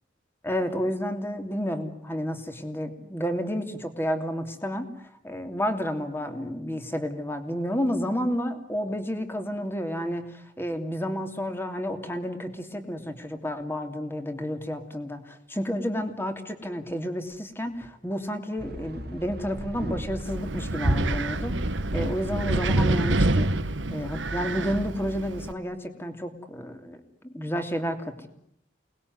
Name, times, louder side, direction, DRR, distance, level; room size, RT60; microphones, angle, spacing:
voice 1, 0.4-23.5 23.9-27.0 27.2-28.3, equal, 10° left, 7 dB, 2.9 m, -31 dB
sound 1, 18.6-23.6, right 1 dB, 55° right, 2.0 m, -33 dB
Wind, 20.2-25.5, right 2 dB, 75° right, 1.4 m, -27 dB
29.0 x 20.5 x 9.6 m, 0.72 s
head